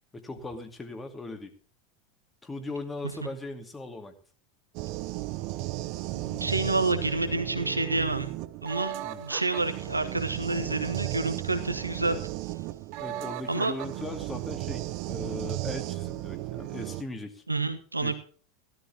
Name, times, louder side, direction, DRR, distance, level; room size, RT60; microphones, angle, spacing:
voice 1, 0.1-1.5 2.4-4.2 9.0-9.2 13.0-17.4 18.0-18.1, left 2 dB, 15° left, 5 dB, 2.4 m, -39 dB
sound 1, 4.7-17.0, right 17 dB, 45° right, 0.7 m, -35 dB
voice 2, 6.1-8.3 8.6-12.2 13.5-13.7 17.5-18.1, right 2 dB, 85° right, 9 dB, 1.5 m, -29 dB
16.5 x 13.0 x 3.0 m, 0.42 s
figure-of-eight pair, 85°, 0 cm